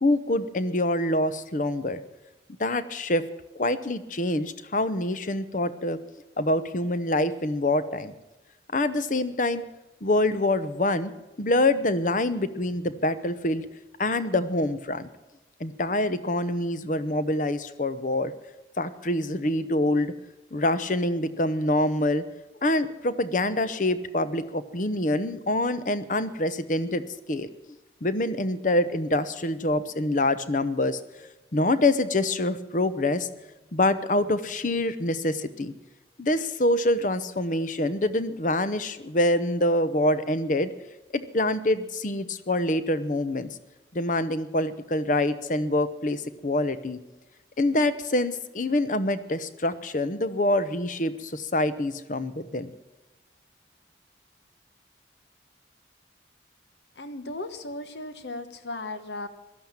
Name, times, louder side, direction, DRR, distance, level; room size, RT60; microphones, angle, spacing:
voice 1, 0.0-2.0 2.6-3.2 3.5-6.0 6.4-8.1 8.7-9.6 10.0-11.1 11.4-13.7 14.0-15.1 15.6-18.3 18.8-20.1 20.5-22.2 22.6-27.0 27.3-27.5 28.0-31.0 31.5-33.3 33.7-35.7 36.2-40.7 41.1-43.5 43.9-47.0 47.6-52.7, left 1 dB, 45° left, 13 dB, 0.8 m, -25 dB
voice 2, 57.0-59.3, left 2 dB, 75° left, 10 dB, 1.1 m, -36 dB
16.5 x 12.0 x 7.3 m, 1.0 s
head